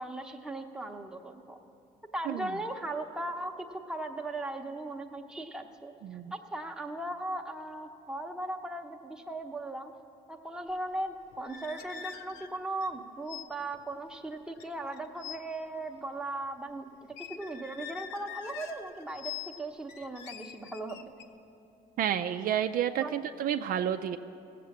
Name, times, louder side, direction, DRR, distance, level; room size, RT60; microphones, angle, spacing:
voice 1, 0.0-1.6 2.1-5.9 6.3-9.9 10.3-19.3 19.6-21.1 23.0-23.1, right 2 dB, 5° right, 2 dB, 0.8 m, -38 dB
sound 1, 11.3-13.0 13.3-13.5 13.7-14.0 14.6-15.4 17.1-19.6 19.9-21.2, left 9 dB, 90° left, 0.6 m, -44 dB
voice 2, 22.0-24.2, right 10 dB, 55° right, 8 dB, 0.4 m, -30 dB
16.5 x 7.6 x 7.1 m, 2.8 s
cardioid pair, 110°, 17 cm